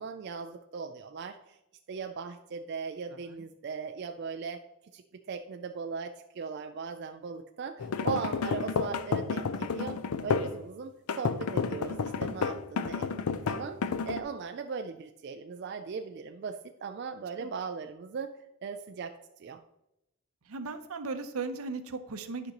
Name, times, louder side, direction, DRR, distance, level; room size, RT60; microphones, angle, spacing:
voice 1, 0.0-1.6 1.9-4.6 4.9-5.0 5.3-18.3 18.6-19.6, right 5 dB, 50° right, 6 dB, 0.3 m, -39 dB
sound 1, 7.8-10.6 11.1-14.2, left 5 dB, 90° left, 0.5 m, -31 dB
voice 2, 20.5-22.5, right 4 dB, 80° right, 9 dB, 0.7 m, -37 dB
10.5 x 5.2 x 2.9 m, 0.88 s
head